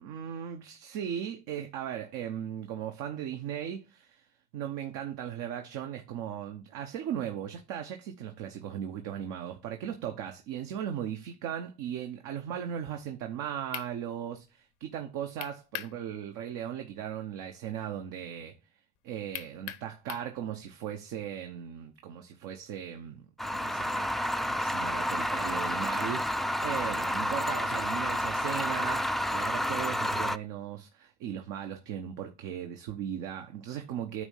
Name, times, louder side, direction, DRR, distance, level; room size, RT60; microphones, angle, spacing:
voice 1, 0.0-4.3 4.5-18.5 19.0-34.2, right 9 dB, 75° right, 1.0 m, -37 dB
sound 1, 13.3-13.4 13.7-13.9 15.4-16.0 16.3-16.4 19.3-20.3, left 13 dB, 75° left, 0.9 m, -39 dB
sound 2, 23.4-30.4, left 1 dB, ahead, 0.3 m, -30 dB
9.5 x 3.2 x 5.4 m
supercardioid pair, 70°, 32 cm